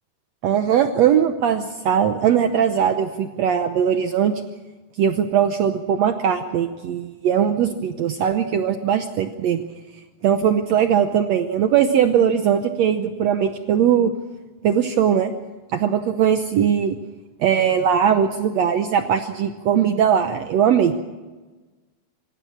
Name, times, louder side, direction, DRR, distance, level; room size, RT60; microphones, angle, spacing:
voice 1, 0.4-4.4 5.0-9.6 10.2-14.1 14.6-15.3 15.7-17.0 17.4-21.0, right 8 dB, 75° right, 7 dB, 1.6 m, -20 dB
25.5 x 15.5 x 7.2 m, 1.2 s
omnidirectional pair, 4.1 m